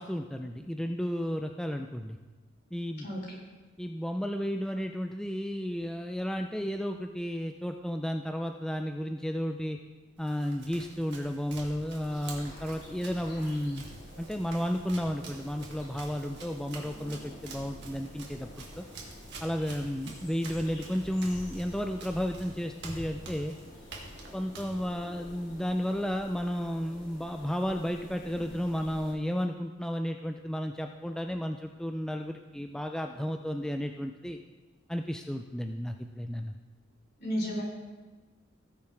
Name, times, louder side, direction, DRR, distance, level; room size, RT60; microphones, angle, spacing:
voice 1, 0.0-2.2 2.7-3.1 3.8-9.8 10.2-13.9 14.2-18.8 19.4-23.5 24.3-34.4 34.9-36.5, equal, 5° left, 4 dB, 0.4 m, -33 dB
Run, 10.2-25.4, right 2 dB, 60° right, 1.8 m, -47 dB
sound 1, 12.1-29.1, left 1 dB, 90° left, 3.8 m, -50 dB
voice 2, 37.2-37.6, equal, 55° left, -3 dB, 3.4 m, -31 dB
18.0 x 6.9 x 3.3 m, 1.2 s
head